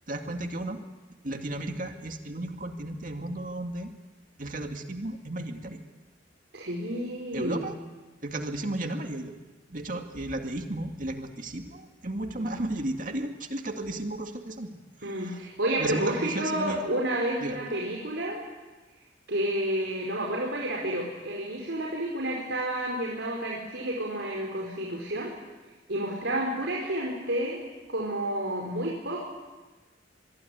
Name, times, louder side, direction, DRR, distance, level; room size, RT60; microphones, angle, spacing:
voice 1, 0.1-0.8 1.2-3.9 4.4-5.8 7.3-7.8 8.2-9.4 9.7-14.7 15.2-15.4 15.8-16.8 17.4-17.6, right 1 dB, 45° right, 4 dB, 2.2 m, -34 dB
voice 2, 6.5-7.7 12.4-12.7 15.0-18.4 19.3-25.3 25.9-27.6 27.9-29.2, right 1 dB, 75° right, -2 dB, 4.8 m, -30 dB
25.5 x 22.0 x 9.5 m, 1.2 s
head